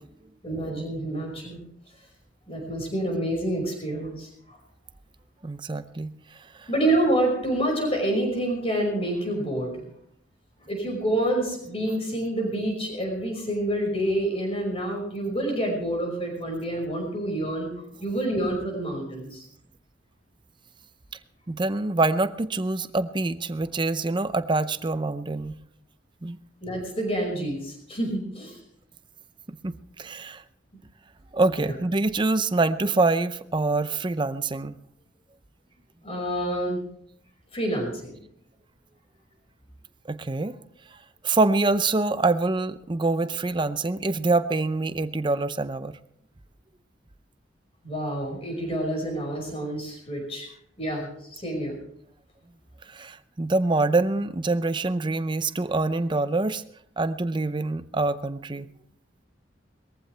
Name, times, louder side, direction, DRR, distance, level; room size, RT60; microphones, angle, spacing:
voice 1, 0.4-1.6 2.5-4.6 6.7-9.9 10.7-17.7 18.0-19.4 26.6-28.6 31.6-31.7 36.0-36.8 37.5-38.2 47.8-50.5 50.8-51.8, right 1 dB, 30° left, 1 dB, 5.6 m, -28 dB
voice 2, 5.4-6.1 6.6-6.7 21.5-25.6 26.2-26.4 29.6-30.4 31.3-34.8 40.1-40.5 41.2-46.0 52.9-56.6 57.0-58.7, right 3 dB, 25° right, 12 dB, 0.6 m, -25 dB
21.0 x 15.0 x 3.3 m, 0.69 s
head